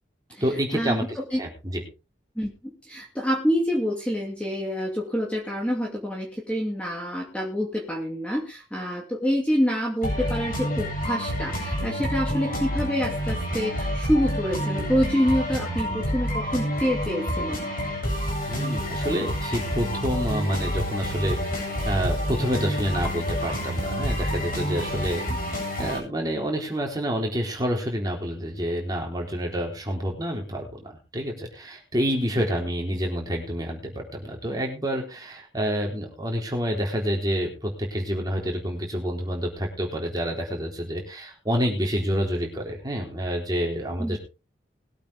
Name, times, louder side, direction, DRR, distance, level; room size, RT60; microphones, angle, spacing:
voice 1, 0.4-1.8 18.5-30.9 31.1-44.2, equal, 20° right, 0 dB, 3.8 m, -28 dB
voice 2, 2.8-17.7 32.4-32.5 44.0-44.2, equal, 5° left, -2 dB, 2.5 m, -27 dB
sound 1, 10.0-26.0, equal, 50° left, 8.0 m, -28 dB
21.0 x 8.6 x 3.5 m, 0.31 s
head